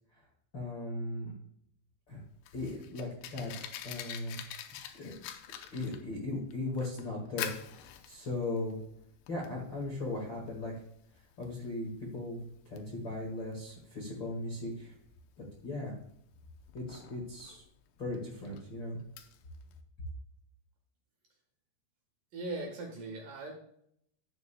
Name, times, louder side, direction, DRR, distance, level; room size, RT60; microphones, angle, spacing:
voice 1, 0.5-1.3 2.1-2.2 2.5-3.5 3.8-4.4 5.0-5.1 5.7-8.8 9.3-10.7 11.4-12.4 12.6-14.9 15.6-15.9 16.7-17.6 18.0-19.0, left 2 dB, 45° left, -3 dB, 1.5 m, -37 dB
Fire, 2.1-19.8, left 10 dB, 75° left, 2.7 m, -47 dB
voice 2, 22.3-23.6, right 2 dB, 60° right, 1 dB, 2.6 m, -39 dB
13.5 x 8.4 x 2.3 m, 0.71 s
omnidirectional pair, 5.1 m